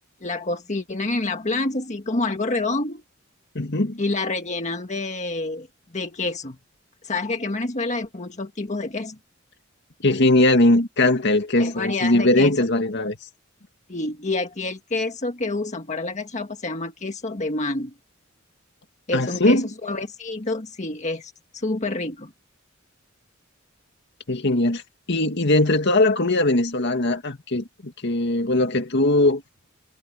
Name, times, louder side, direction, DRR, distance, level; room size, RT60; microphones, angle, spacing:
voice 1, 0.2-3.0 4.0-5.7 5.9-6.6 7.0-9.2 11.6-12.5 13.9-17.9 19.1-22.3, left 2 dB, 35° left, 1.6 m, -28 dB
voice 2, 3.6-4.0 10.0-13.2 19.1-19.7 24.3-24.8 25.1-29.4, left 2 dB, 60° left, 2.1 m, -20 dB
head